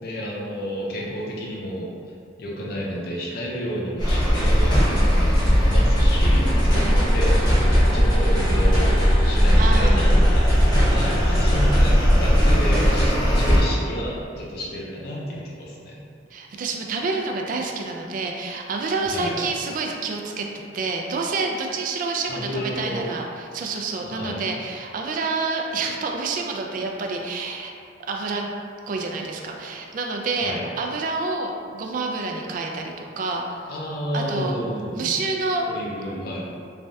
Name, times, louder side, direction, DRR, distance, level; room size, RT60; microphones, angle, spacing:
voice 1, 0.0-1.9 2.4-5.3 5.6-9.0 9.2-10.6 10.9-16.0 19.1-19.4 22.3-23.0 24.0-24.5 30.4-30.7 33.7-35.1 35.7-36.4, equal, 60° left, -4 dB, 0.6 m, -31 dB
sound 1, 4.0-13.6, equal, 25° left, 0.8 m, -18 dB
voice 2, 6.7-7.0 9.6-10.1 10.8-11.4 12.2-12.3 16.3-20.5 20.7-27.7 28.1-28.5 28.9-33.7 34.1-34.6 34.9-35.7, right 3 dB, 50° right, 1 dB, 0.3 m, -28 dB
3.2 x 2.2 x 2.6 m, 2.4 s
head